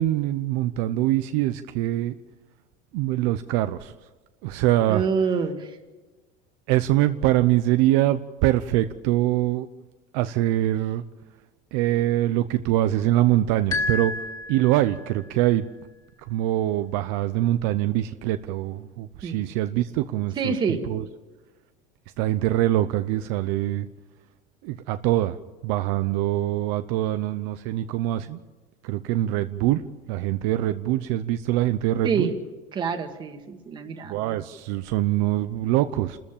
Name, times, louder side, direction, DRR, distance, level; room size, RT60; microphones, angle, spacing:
voice 1, 0.0-2.1 2.9-3.9 4.4-5.1 6.7-9.7 10.1-11.0 11.7-14.1 14.5-15.7 16.3-21.0 22.2-23.9 24.6-25.4 25.6-28.4 28.8-29.8 30.1-32.3 34.1-36.2, right 14 dB, 60° right, 10 dB, 0.8 m, -24 dB
voice 2, 4.9-5.7 19.2-19.4 20.4-20.8 32.0-32.3 32.7-34.1, right 5 dB, 20° right, 6 dB, 1.8 m, -26 dB
sound 1, 13.7-15.3, left 2 dB, 20° left, 2.5 m, -30 dB
29.5 x 14.0 x 7.3 m, 1.2 s
cardioid pair, 175°, 21 cm